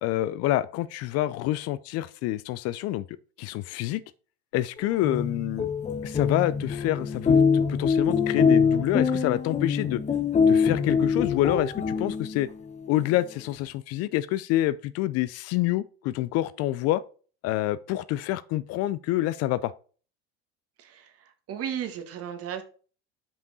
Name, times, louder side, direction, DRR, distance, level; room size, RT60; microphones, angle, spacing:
voice 1, 0.0-3.0 3.4-4.0 4.5-5.7 6.0-10.0 10.5-12.5 12.9-17.0 17.4-19.7, left 15 dB, 50° left, 0.5 m, -27 dB
sound 1, 4.9-12.5, left 6 dB, 20° left, 1.0 m, -24 dB
voice 2, 20.8-22.6, right 9 dB, 45° right, 1.4 m, -35 dB
5.5 x 5.2 x 4.0 m
hypercardioid pair, 90°, 33 cm